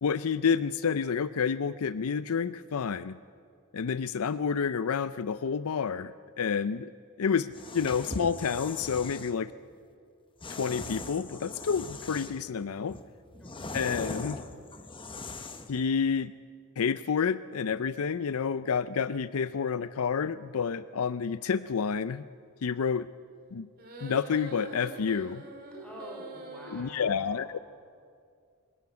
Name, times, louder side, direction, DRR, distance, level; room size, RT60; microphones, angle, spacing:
voice 1, 0.0-3.2 3.7-6.9 7.2-9.5 10.5-13.0 13.7-14.4 15.7-16.3 16.8-22.3 22.6-23.1 23.5-23.7 24.0-25.4 26.7-27.6, left 6 dB, 70° left, 15 dB, 0.5 m, -29 dB
sound 1, 7.5-9.3 10.4-12.5 12.9-15.8, left 3 dB, 25° left, 1.1 m, -40 dB
voice 2, 13.4-14.2 25.8-27.6, equal, 5° left, -1 dB, 5.5 m, -48 dB
sound 2, 23.8-26.8, right 2 dB, 45° right, 3.1 m, -44 dB
24.0 x 14.5 x 9.6 m, 2.2 s
head